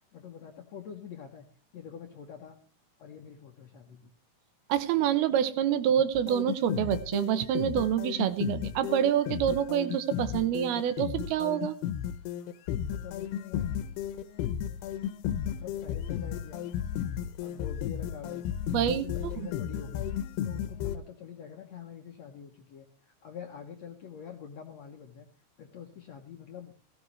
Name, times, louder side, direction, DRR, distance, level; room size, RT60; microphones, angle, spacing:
voice 1, 0.1-1.5 1.7-2.6 3.0-4.1 12.9-13.9 15.4-16.7 17.4-18.4 18.7-20.1 20.4-25.3 25.6-26.7, left 8 dB, 70° left, 3 dB, 1.7 m, -45 dB
voice 2, 4.7-11.8 18.7-19.1 19.4-19.5, right 10 dB, 80° right, 12 dB, 2.8 m, -27 dB
sound 1, 6.2-21.0, left 10 dB, 90° left, 2.8 m, -34 dB
16.5 x 15.5 x 3.3 m, 0.35 s
omnidirectional pair, 4.5 m